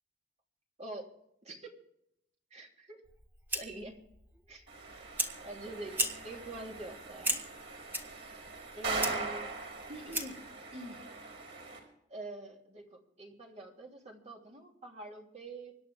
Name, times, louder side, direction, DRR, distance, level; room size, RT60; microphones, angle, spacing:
voice 1, 0.8-1.2 1.4-1.8 2.5-3.0 3.5-4.0 4.5-4.7 5.4-7.4 8.7-9.6 9.9-10.4 10.7-11.0 12.1-15.7, right 2 dB, 40° right, 0 dB, 3.1 m, -45 dB
Fire, 3.0-10.5, right 1 dB, 10° right, 1.6 m, -38 dB
sound 1, 4.7-11.8, right 3 dB, 80° right, 5.2 m, -41 dB
25.5 x 10.5 x 3.6 m, 0.77 s
head